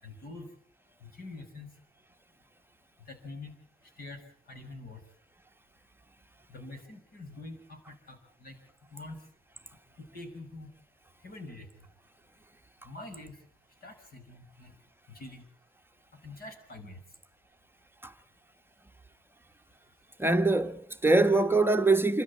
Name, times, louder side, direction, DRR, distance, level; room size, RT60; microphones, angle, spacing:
voice 1, 0.0-0.5 1.0-1.7 3.0-3.6 4.0-5.0 6.5-8.6 8.9-9.2 10.0-10.7 11.2-11.7 12.8-13.4 13.8-14.7 15.1-15.5 16.2-17.0, left 2 dB, 50° left, 6.0 m, -45 dB
voice 2, 20.2-22.2, right 2 dB, 10° right, 1.2 m, -23 dB
27.5 x 13.0 x 8.5 m
cardioid pair, 90°, 20 cm